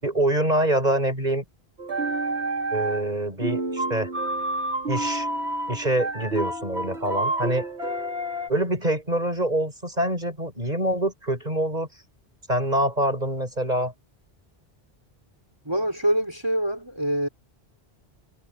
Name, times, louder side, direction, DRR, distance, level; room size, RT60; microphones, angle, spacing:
voice 1, 0.0-1.4 2.7-4.1 4.9-5.3 5.7-7.6 8.5-11.9 12.5-13.9, right 1 dB, 40° right, 6.8 m, -25 dB
sound 1, 1.8-3.2 3.4-8.5, right 2 dB, 90° right, 2.7 m, -29 dB
voice 2, 15.6-17.3, equal, 25° right, 4.3 m, -25 dB
omnidirectional pair, 1.1 m